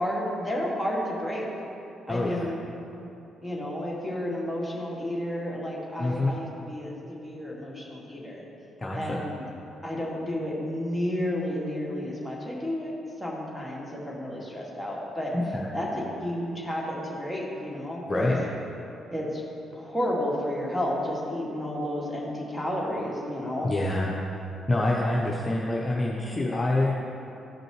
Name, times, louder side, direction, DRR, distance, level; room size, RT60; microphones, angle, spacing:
voice 1, 0.0-1.5 2.1-2.6 3.4-8.5 8.9-9.4 9.8-12.9 13.2-15.3 15.7-18.3 19.1-19.4 19.7-23.7, left 1 dB, ahead, -4 dB, 1.9 m, -31 dB
voice 2, 2.1-2.5 6.0-6.4 8.8-9.2 15.3-15.7 18.0-18.4 23.6-24.1 24.7-26.9, left 2 dB, 25° left, -4 dB, 0.8 m, -26 dB
13.0 x 5.2 x 3.1 m, 2.8 s
figure-of-eight pair, 40°, 0 cm